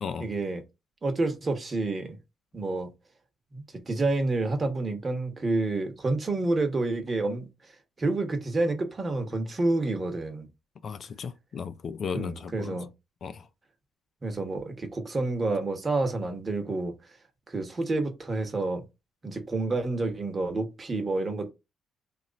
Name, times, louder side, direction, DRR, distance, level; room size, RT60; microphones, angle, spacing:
voice 1, 0.2-0.6 1.0-2.2 2.5-2.9 3.5-7.7 8.0-10.5 12.1-12.9 14.2-16.9 17.5-18.9 19.2-21.5, right 2 dB, 35° right, 1.1 m, -29 dB
voice 2, 10.8-12.8 13.2-13.4, left 6 dB, 55° left, 0.4 m, -35 dB
3.0 x 2.5 x 3.9 m
cardioid pair, 90°, 0 cm